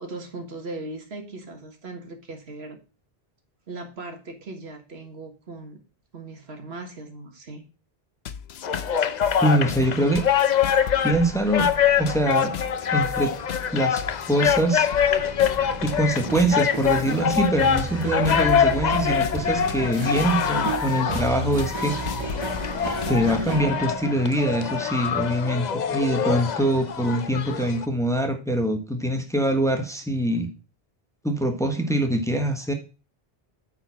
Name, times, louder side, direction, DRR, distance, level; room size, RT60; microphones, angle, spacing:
voice 1, 0.0-2.8 3.7-5.8 6.1-7.6, right 2 dB, 90° right, 5 dB, 1.8 m, -38 dB
sound 1, 8.3-23.5, left 8 dB, 85° left, 0.9 m, -37 dB
sound 2, 8.6-27.8, left 8 dB, 50° left, 0.7 m, -25 dB
voice 2, 9.4-10.2 11.0-11.7 12.0-12.5 12.9-13.3 13.7-14.0 14.3-14.9 15.8-22.0 23.1-30.5 31.2-32.7, right 1 dB, 5° left, 5 dB, 1.2 m, -23 dB
sound 3, 12.2-27.3, right 5 dB, 35° right, 0.6 m, -36 dB
8.8 x 4.6 x 5.7 m, 0.34 s
omnidirectional pair, 1.0 m